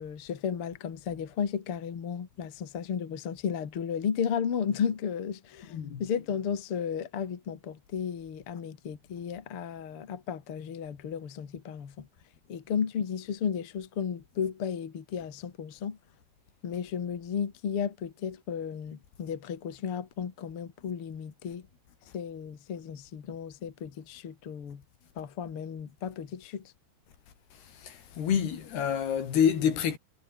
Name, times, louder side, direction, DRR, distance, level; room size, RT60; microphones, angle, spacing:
voice 1, 0.0-5.7 6.0-12.1 12.5-16.0 16.6-21.6 22.1-24.8 25.2-26.6, left 7 dB, 40° left, 2.5 m, -34 dB
voice 2, 5.7-6.0 27.8-30.0, left 8 dB, 75° left, 5.0 m, -27 dB
omnidirectional pair, 4.7 m